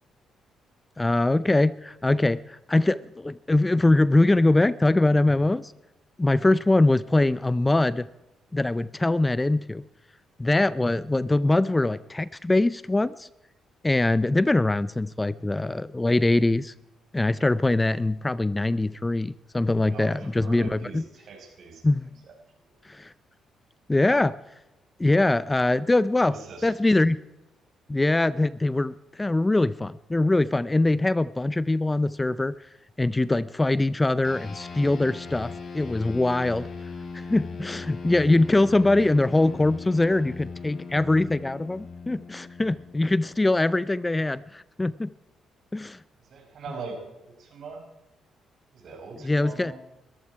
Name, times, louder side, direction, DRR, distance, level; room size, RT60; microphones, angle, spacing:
voice 1, 1.0-5.7 6.2-8.1 8.5-9.8 10.4-13.3 13.8-16.7 17.1-21.0 21.8-22.1 22.8-23.1 23.9-24.4 25.0-26.4 26.6-27.2 27.9-32.5 33.0-36.7 37.1-45.1 45.7-46.0 49.2-49.7, left 2 dB, 15° left, 18 dB, 0.5 m, -23 dB
voice 2, 19.8-21.8 26.2-26.8 46.3-47.8 48.7-49.8, right 4 dB, 65° right, 3 dB, 5.0 m, -41 dB
sound 1, 34.2-44.0, left 4 dB, 45° left, 4.2 m, -39 dB
21.0 x 14.0 x 4.7 m, 0.99 s
cardioid pair, 75°, 0 cm